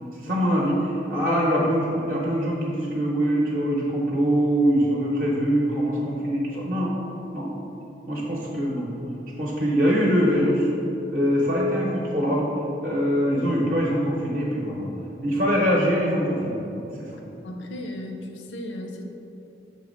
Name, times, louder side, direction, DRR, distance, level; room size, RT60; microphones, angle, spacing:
voice 1, 0.2-6.9 7.3-7.5 8.1-8.9 9.4-10.7 11.1-12.5 12.8-14.9 15.2-16.6 17.0-17.1, equal, 50° right, -4 dB, 0.8 m, -23 dB
voice 2, 17.4-19.0, left 1 dB, 80° left, 4 dB, 0.6 m, -35 dB
5.7 x 3.1 x 5.3 m, 3.0 s
head